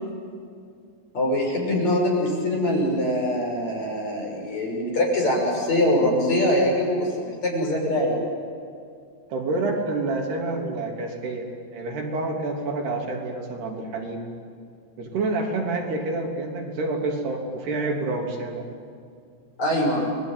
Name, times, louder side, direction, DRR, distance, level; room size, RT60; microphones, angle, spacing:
voice 1, 1.1-8.2 19.6-20.0, left 1 dB, 40° left, -1 dB, 7.7 m, -23 dB
voice 2, 9.3-14.3 15.0-18.7, right 2 dB, 75° right, 1 dB, 5.3 m, -28 dB
29.5 x 21.5 x 9.3 m, 2.3 s
omnidirectional pair, 4.8 m